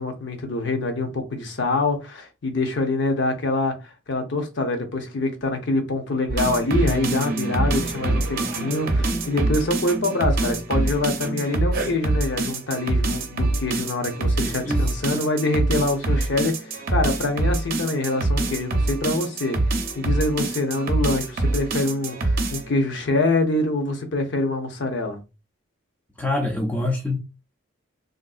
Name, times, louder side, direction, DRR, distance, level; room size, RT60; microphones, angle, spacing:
voice 1, 0.0-25.2, left 2 dB, 55° left, 0.7 m, -25 dB
sound 1, 6.3-22.7, right 2 dB, 45° right, 0.7 m, -25 dB
voice 2, 14.7-15.2 26.2-27.2, left 2 dB, 10° left, 0.4 m, -26 dB
3.5 x 2.5 x 2.4 m
head